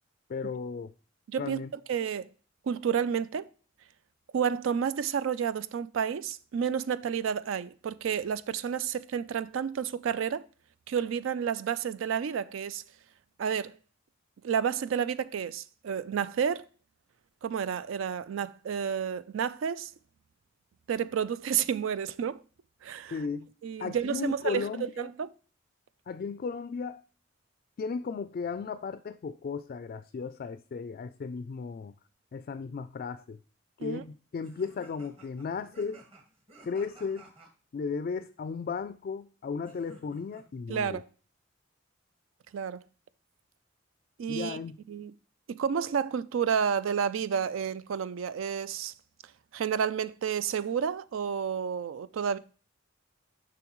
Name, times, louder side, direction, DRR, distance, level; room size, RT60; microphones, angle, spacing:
voice 1, 0.3-0.9 1.4-1.7 23.1-23.5 23.8-25.1 26.1-27.0 27.8-31.9 32.3-33.4 33.8-36.0 36.6-37.2 37.7-41.0 44.3-44.8, left 5 dB, 45° left, 0.3 m, -35 dB
voice 2, 1.3-1.6 1.9-2.3 2.7-3.5 4.3-10.5 10.9-12.8 13.4-13.8 14.4-16.6 17.4-19.9 20.9-22.4 22.8-23.1 23.6-25.3 33.8-34.0 40.7-41.0 42.5-42.8 44.2-44.6 44.9-45.1 45.5-48.9 49.5-52.4, right 7 dB, 85° right, 0.4 m, -30 dB
sound 1, 34.4-37.5 39.6-40.4, right 1 dB, 30° right, 1.5 m, -54 dB
7.1 x 5.8 x 3.0 m
head